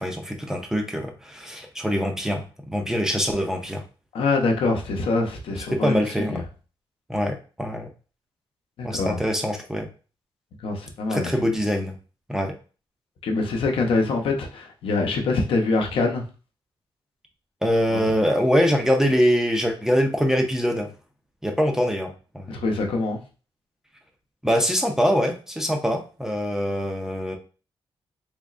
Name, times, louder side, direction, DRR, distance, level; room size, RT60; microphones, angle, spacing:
voice 1, 0.0-3.8 5.5-6.4 7.1-7.9 8.8-9.9 11.1-11.9 12.3-12.5 17.6-20.9 21.4-22.5 24.4-27.4, equal, 5° right, 0.4 m, -24 dB
voice 2, 4.1-6.4 8.8-9.2 10.6-11.3 13.2-16.2 17.9-18.0 22.5-23.2, left 3 dB, 75° left, 0.8 m, -24 dB
3.5 x 3.0 x 2.5 m
wide cardioid pair, 170°, 9 cm